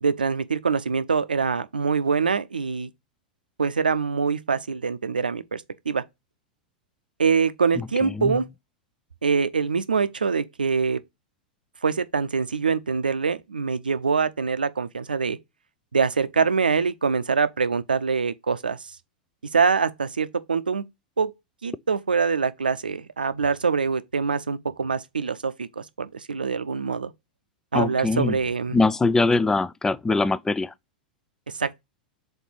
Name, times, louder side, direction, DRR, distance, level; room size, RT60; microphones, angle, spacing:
voice 1, 0.0-2.9 3.6-6.0 7.2-8.4 9.2-11.0 11.8-15.4 15.9-19.0 19.4-20.8 21.2-21.3 21.6-27.1 27.7-28.8 31.5-31.8, right 5 dB, 80° right, 0.5 m, -24 dB
voice 2, 8.0-8.3 27.7-28.4 28.7-30.7, left 3 dB, 10° left, 0.4 m, -22 dB
5.3 x 4.0 x 4.6 m
figure-of-eight pair, 90°, 5 cm